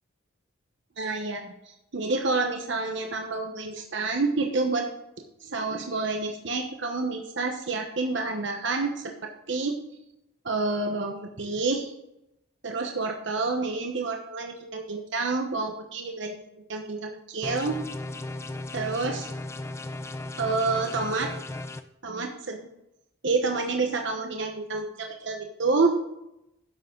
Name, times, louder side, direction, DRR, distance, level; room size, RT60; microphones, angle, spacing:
voice 1, 1.0-1.5 1.9-4.8 5.4-9.1 9.5-9.8 10.4-11.9 12.6-16.4 16.7-17.8 18.7-19.3 20.4-21.3 22.0-22.7 23.2-26.0, right 3 dB, 60° right, 3 dB, 1.0 m, -28 dB
sound 1, 17.4-21.8, left 2 dB, 15° left, 0.4 m, -36 dB
10.5 x 7.5 x 3.8 m, 0.84 s
head